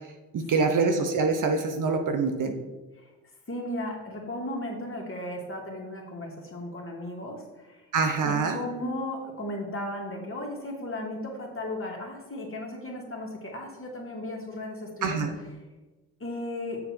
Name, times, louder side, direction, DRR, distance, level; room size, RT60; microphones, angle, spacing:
voice 1, 0.3-2.5 7.9-8.5 15.0-15.3, right 4 dB, 50° right, 5 dB, 1.1 m, -25 dB
voice 2, 3.5-7.8 8.2-15.3 16.2-16.8, left 1 dB, 30° left, 0 dB, 2.6 m, -35 dB
6.9 x 6.8 x 4.7 m, 1.1 s
hypercardioid pair, 60°, 41 cm